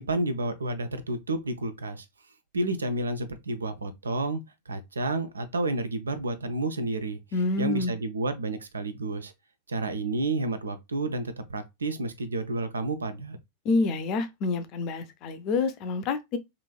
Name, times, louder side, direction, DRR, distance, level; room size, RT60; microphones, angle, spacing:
voice 1, 0.0-2.1 2.5-7.2 7.6-9.3 9.7-13.4, right 2 dB, 75° right, 0.4 m, -30 dB
voice 2, 7.3-7.9 13.6-16.4, left 3 dB, 40° left, 0.4 m, -27 dB
3.0 x 2.5 x 2.3 m
figure-of-eight pair, 90°, 0 cm